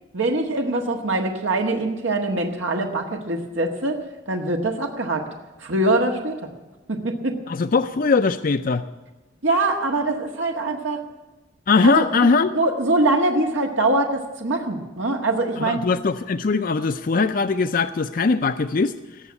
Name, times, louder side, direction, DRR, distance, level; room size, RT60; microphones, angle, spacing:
voice 1, 0.1-4.0 4.3-5.3 5.6-6.4 6.9-7.3 9.4-11.0 11.8-12.3 12.5-15.8, right 2 dB, 85° right, 2 dB, 1.5 m, -23 dB
voice 2, 7.5-8.8 11.7-12.5 15.6-18.9, left 4 dB, 45° left, 9 dB, 0.4 m, -20 dB
18.0 x 7.2 x 9.8 m, 1.1 s
head